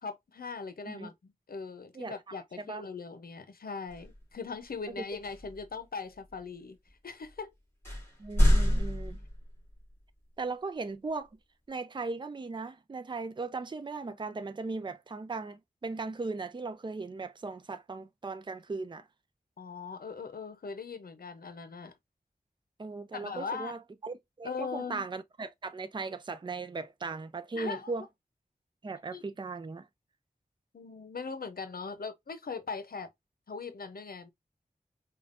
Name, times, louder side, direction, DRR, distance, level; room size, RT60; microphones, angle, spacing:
voice 1, 0.0-6.8 7.0-7.5 19.6-21.9 23.1-23.8 24.4-25.0 27.5-27.9 29.1-29.2 30.7-33.1 33.5-34.3, left 5 dB, 85° left, 0.6 m, -40 dB
sound 1, 3.9-4.2 5.2-5.6 6.3-6.4 7.2-7.3 7.8-9.8, equal, 15° left, 2.7 m, -26 dB
voice 2, 8.2-9.2 10.4-11.3 11.7-19.1 22.8-28.0 28.8-29.9, right 3 dB, 30° right, 0.4 m, -38 dB
5.0 x 2.3 x 2.5 m
wide cardioid pair, 75°, 15 cm